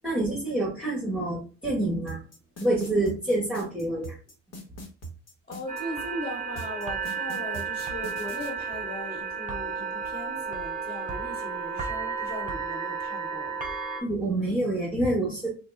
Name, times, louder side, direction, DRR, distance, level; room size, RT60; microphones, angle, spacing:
voice 1, 0.0-2.2 2.6-4.2 14.0-15.5, right 1 dB, 5° right, 1.0 m, -27 dB
sound 1, 2.1-5.8 6.6-8.5, right 1 dB, 55° left, 1.2 m, -41 dB
voice 2, 5.5-13.5, left 1 dB, 35° left, 1.5 m, -38 dB
sound 2, 5.7-14.0, right 5 dB, 25° right, 0.9 m, -33 dB
2.8 x 2.2 x 3.3 m
cardioid pair, 90°, 30 cm